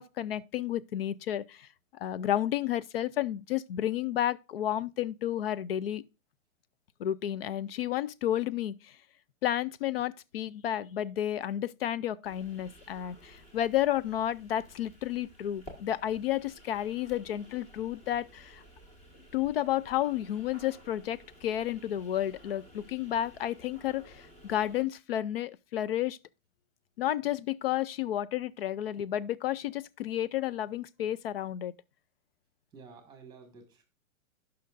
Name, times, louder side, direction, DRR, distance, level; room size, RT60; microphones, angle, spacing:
voice 1, 0.0-1.7 1.9-6.0 7.0-8.9 9.4-18.6 19.3-26.2 27.0-31.7, left 12 dB, 50° left, 0.4 m, -31 dB
sound 1, 12.2-24.8, equal, 15° left, 1.4 m, -54 dB
voice 2, 32.7-33.8, right 5 dB, 10° right, 1.6 m, -51 dB
17.0 x 5.7 x 2.5 m
hypercardioid pair, 155°, 41 cm